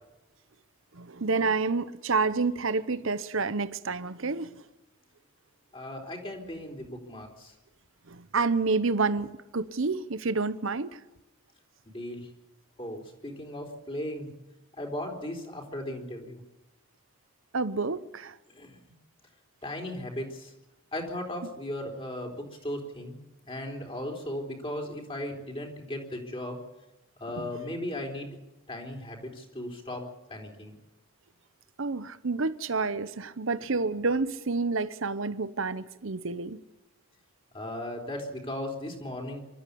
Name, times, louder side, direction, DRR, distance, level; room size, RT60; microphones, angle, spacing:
voice 1, 0.9-4.6 8.1-11.0 17.5-18.3 27.4-27.5 31.8-36.6, right 4 dB, 65° right, 0.9 m, -29 dB
voice 2, 5.7-7.5 11.9-12.3 12.8-14.3 14.8-16.4 18.5-18.8 19.6-20.5 20.9-23.2 23.5-26.6 27.2-28.3 28.7-30.0 30.3-30.7 37.5-39.4, left 1 dB, 25° left, 4.0 m, -37 dB
24.0 x 13.5 x 8.5 m
head